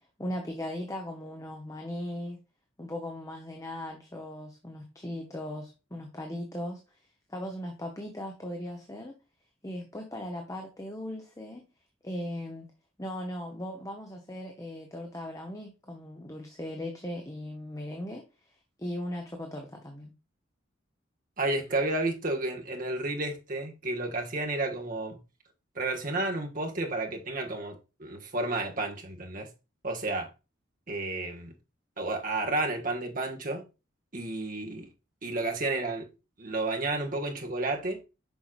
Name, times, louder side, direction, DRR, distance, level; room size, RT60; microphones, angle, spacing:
voice 1, 0.2-2.4 2.8-7.0 7.3-9.1 9.6-11.7 12.0-12.7 13.0-18.2 18.8-20.1, left 1 dB, 15° left, 1.0 m, -38 dB
voice 2, 21.4-25.2 25.7-29.5 29.8-30.3 30.9-31.5 32.0-33.6 34.1-34.9 35.2-36.1 36.4-38.0, right 2 dB, 45° right, 1.5 m, -31 dB
7.2 x 5.8 x 2.5 m
head